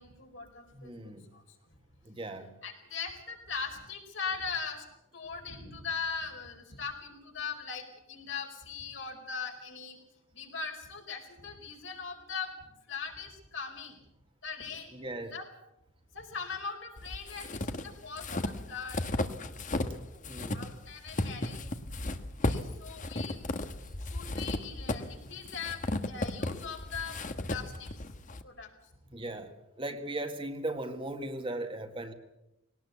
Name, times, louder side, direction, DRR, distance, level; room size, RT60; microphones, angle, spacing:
voice 1, 0.0-0.9 1.3-1.4 2.6-4.9 5.1-10.0 10.3-12.5 12.9-14.0 14.4-14.9 15.3-15.4 16.1-19.0 20.1-21.6 22.4-23.4 24.0-27.2 27.5-27.9 28.4-28.7, left 5 dB, 70° left, 2 dB, 4.7 m, -40 dB
voice 2, 0.7-1.3 2.0-2.5 14.9-15.3 20.3-20.7 29.1-32.1, right 1 dB, 25° right, 6 dB, 1.7 m, -38 dB
sound 1, 17.0-20.0 20.2-28.4, left 2 dB, 40° left, 1.3 m, -35 dB
21.0 x 18.5 x 8.3 m, 0.88 s
head